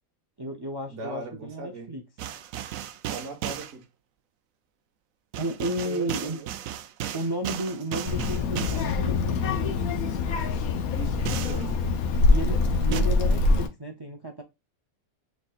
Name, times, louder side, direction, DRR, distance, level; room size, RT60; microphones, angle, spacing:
voice 1, 0.4-2.0 5.4-6.4 7.1-10.0 12.3-14.4, right 1 dB, 40° right, 0.3 m, -33 dB
voice 2, 0.9-2.0 3.1-3.8 5.8-6.6 10.9-11.8, right 4 dB, 55° right, 1.6 m, -39 dB
sound 1, 2.2-3.7 5.3-8.9 11.3-11.6 12.9-13.0, right 11 dB, 75° right, 0.9 m, -35 dB
Child speech kid speaking, 8.1-13.7, left 3 dB, 85° left, 1.2 m, -24 dB
6.2 x 3.5 x 2.4 m
omnidirectional pair, 1.5 m